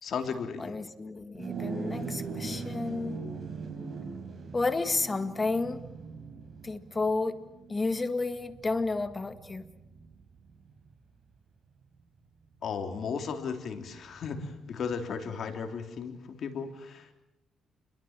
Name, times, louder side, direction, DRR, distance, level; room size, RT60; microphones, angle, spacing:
voice 1, 0.0-0.8 12.6-17.1, left 6 dB, 60° left, 5 dB, 3.6 m, -35 dB
voice 2, 0.6-3.2 4.5-5.8 6.6-7.3 7.7-9.6, left 3 dB, 25° left, 9 dB, 2.0 m, -31 dB
sound 1, 1.3-10.9, right 5 dB, 50° right, 5.2 m, -40 dB
28.5 x 22.5 x 7.5 m, 0.95 s
cardioid pair, 90°, 0 cm